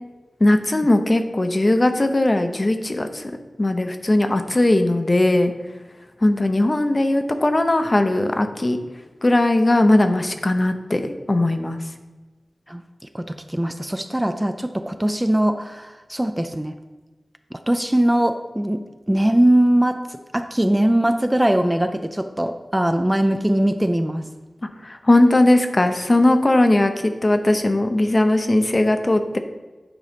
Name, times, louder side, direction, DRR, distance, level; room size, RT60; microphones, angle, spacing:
voice 1, 0.4-3.3 3.6-5.5 6.2-8.8 9.2-11.8 24.8-29.4, left 1 dB, 35° left, 7 dB, 0.7 m, -18 dB
voice 2, 13.1-16.8 17.5-24.3, right 1 dB, 10° right, 8 dB, 0.4 m, -21 dB
8.9 x 4.1 x 5.1 m, 1.2 s
wide cardioid pair, 80°, 0 cm